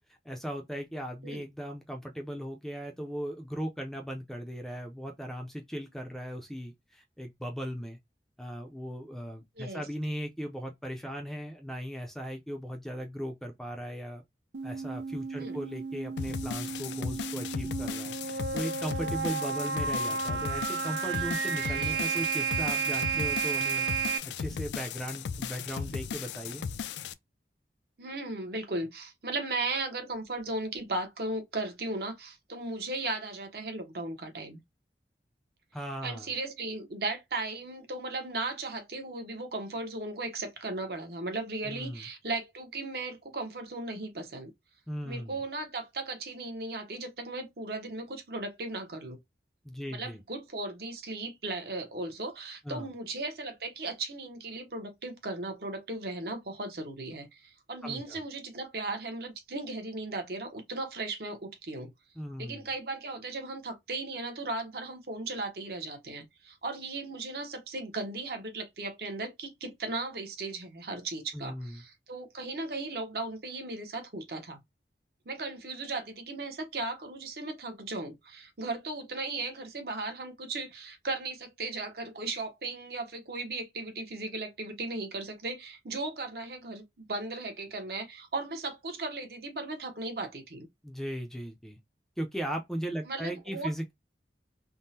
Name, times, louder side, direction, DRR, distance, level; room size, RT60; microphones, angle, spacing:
voice 1, 0.2-8.0 8.4-14.2 14.6-26.6 35.7-36.3 41.6-42.0 44.9-45.4 49.6-50.2 52.7-52.9 57.8-58.2 62.2-62.7 71.3-71.8 90.8-91.8 92.2-93.9, equal, ahead, 0.4 m, -38 dB
voice 2, 9.6-9.9 15.4-15.6 21.9-22.1 28.0-34.6 36.0-44.5 45.0-49.2 49.9-61.9 62.4-74.6 75.3-90.7 93.1-93.7, right 2 dB, 60° right, 0.9 m, -36 dB
sound 1, 14.5-24.2, right 5 dB, 80° right, 0.5 m, -32 dB
sound 2, 16.2-27.1, left 6 dB, 80° left, 0.3 m, -37 dB
3.5 x 2.0 x 2.7 m
head